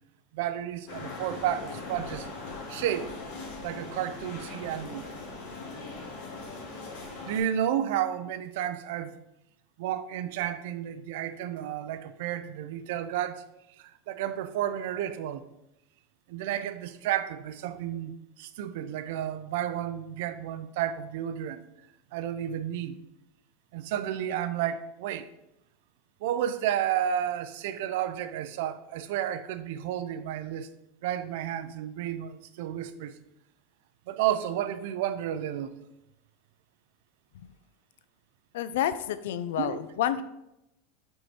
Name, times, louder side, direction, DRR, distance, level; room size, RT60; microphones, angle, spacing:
voice 1, 0.3-2.3 2.7-3.1 3.6-5.1 7.2-9.2 9.8-13.4 13.8-15.4 16.3-18.1 18.4-21.6 22.1-23.0 23.7-25.3 26.2-30.7 31.0-33.2 34.1-35.7 39.6-39.8, right 10 dB, 65° right, 0.5 m, -31 dB
sound 1, 0.9-7.4, left 3 dB, 60° left, 2.0 m, -40 dB
voice 2, 38.5-40.2, left 11 dB, 85° left, 0.4 m, -29 dB
5.4 x 4.7 x 4.4 m
supercardioid pair, 155°, 0 cm